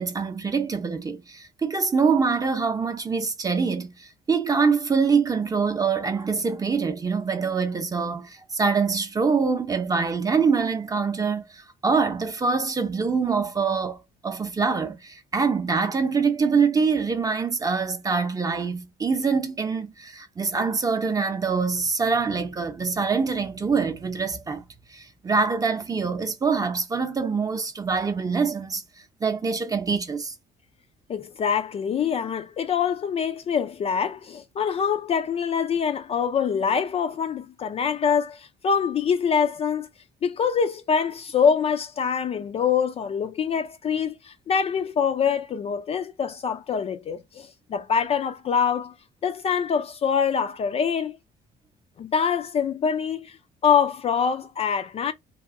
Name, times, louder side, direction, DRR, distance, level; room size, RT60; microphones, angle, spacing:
voice 1, 0.0-14.0 14.2-24.6 24.9-28.8 29.2-30.3, right 5 dB, 20° right, 0.6 m, -24 dB
voice 2, 31.1-39.9 40.2-48.9 49.2-51.2 52.0-53.4 53.6-55.1, left 7 dB, 35° left, 0.3 m, -24 dB
2.9 x 2.6 x 2.5 m
cardioid pair, 110°, 17 cm